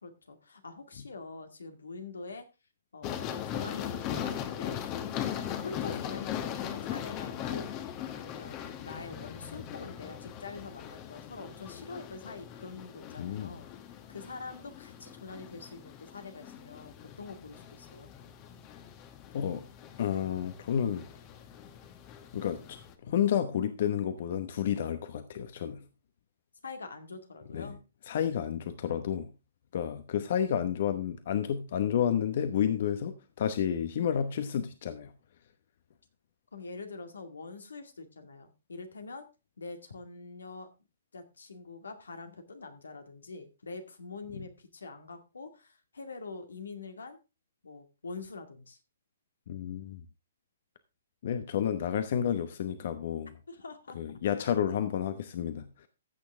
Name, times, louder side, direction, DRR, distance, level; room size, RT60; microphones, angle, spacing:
voice 1, 0.0-2.5 2.9-4.8 5.4-7.7 8.1-13.7 14.1-18.1 26.6-27.8 36.5-39.3 39.6-40.7 41.1-47.2 47.6-48.8 53.5-54.0, left 4 dB, 90° left, 7 dB, 2.2 m, -45 dB
sound 1, 3.0-22.9, left 9 dB, 30° left, 1.2 m, -40 dB
voice 2, 13.2-13.5 19.3-19.7 20.0-21.0 22.3-25.8 27.5-27.7 28.1-29.3 29.7-35.1 44.3-44.4 49.5-50.0 51.2-53.3 53.9-55.9, left 9 dB, 55° left, 11 dB, 0.9 m, -31 dB
15.0 x 6.5 x 3.5 m, 0.28 s
hypercardioid pair, 145°, 0 cm